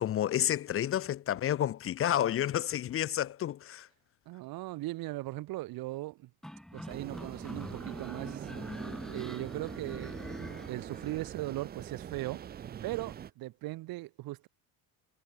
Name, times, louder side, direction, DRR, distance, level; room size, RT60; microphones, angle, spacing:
voice 1, 0.0-3.9, left 11 dB, 35° left, 1.0 m, -30 dB
voice 2, 4.2-6.3 6.7-8.5 9.1-10.2 10.7-12.4 12.8-14.5, right 18 dB, 75° right, 3.4 m, -38 dB
sound 1, 6.4-11.2, equal, ahead, 2.5 m, -44 dB
sound 2, 6.9-13.3, right 9 dB, 25° right, 0.6 m, -43 dB
cardioid pair, 180°, 36 cm